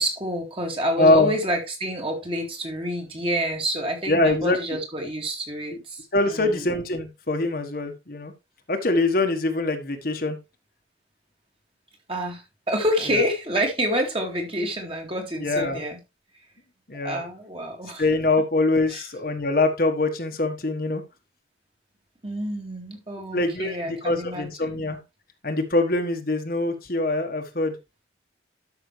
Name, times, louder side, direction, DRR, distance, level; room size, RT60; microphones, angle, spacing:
voice 1, 0.0-6.7 12.1-16.0 17.0-18.0 18.9-19.0 22.2-24.9, equal, 30° right, 2.3 m, -28 dB
voice 2, 1.0-1.3 4.1-4.8 6.1-8.3 8.7-10.4 15.4-15.8 16.9-17.2 18.0-21.0 23.3-25.0 25.4-27.8, left 2 dB, 50° left, 1.4 m, -23 dB
12.0 x 6.1 x 3.3 m
head